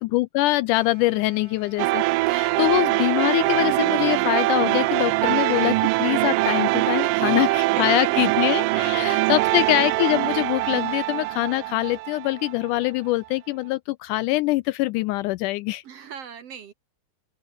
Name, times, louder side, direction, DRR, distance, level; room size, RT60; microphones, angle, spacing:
voice 1, 0.0-15.8, left 18 dB, 80° left, 1.9 m, -24 dB
sound 1, 0.7-6.9, right 3 dB, 30° right, 6.6 m, -51 dB
sound 2, 1.8-12.7, right 20 dB, 80° right, 2.2 m, -23 dB
voice 2, 2.6-3.0 7.1-9.6 15.8-16.7, right 8 dB, 55° right, 2.0 m, -40 dB
open air
omnidirectional pair, 3.9 m